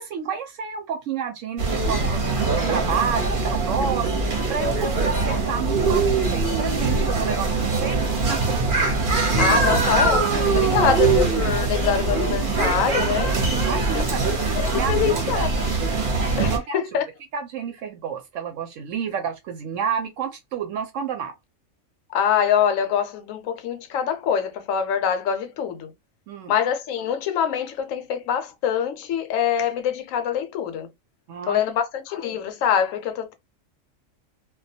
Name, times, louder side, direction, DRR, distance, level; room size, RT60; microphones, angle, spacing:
voice 1, 0.0-8.0 8.3-8.6 10.8-11.0 11.8-12.1 13.3-14.2 14.7-15.5 16.5-16.8 17.3-21.3 26.3-26.5 31.3-31.6, right 7 dB, 75° right, 0.9 m, -30 dB
sound 1, 1.6-16.6, right 3 dB, 50° right, 0.8 m, -22 dB
voice 2, 4.6-5.0 9.4-13.3 13.9-14.0 14.5-15.6 16.4-17.0 22.1-25.9 26.5-30.9 31.5-33.3, left 8 dB, 80° left, 1.0 m, -24 dB
2.2 x 2.2 x 2.6 m
omnidirectional pair, 1.4 m